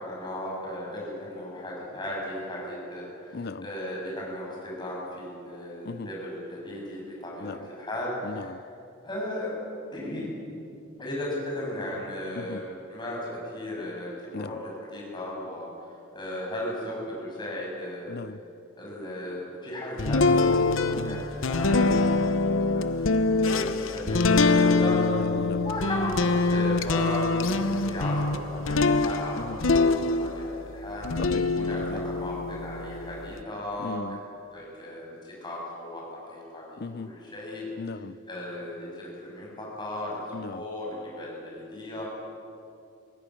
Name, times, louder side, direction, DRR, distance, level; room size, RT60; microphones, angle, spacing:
voice 1, 0.0-8.5 9.0-9.5 9.9-10.3 11.0-12.6 12.9-15.7 16.1-18.2 18.8-25.0 25.6-29.3 29.7-31.1 31.5-34.0 34.5-37.6 38.3-40.2 40.5-42.0, left 1 dB, 20° left, 7.3 m, -36 dB
voice 2, 3.3-3.7 5.8-6.1 7.4-7.7 8.2-8.6 12.4-12.6 14.3-14.6 18.1-18.4 20.9-21.2 21.9-22.2 25.1-25.7 29.4-29.6 31.2-31.5 31.8-32.0 33.8-34.2 36.8-37.1 37.8-38.2 40.3-40.6, left 3 dB, 50° left, 0.5 m, -37 dB
sound 1, 20.0-30.6 31.0-33.4, left 3 dB, 70° left, 0.9 m, -24 dB
21.0 x 16.5 x 9.9 m
head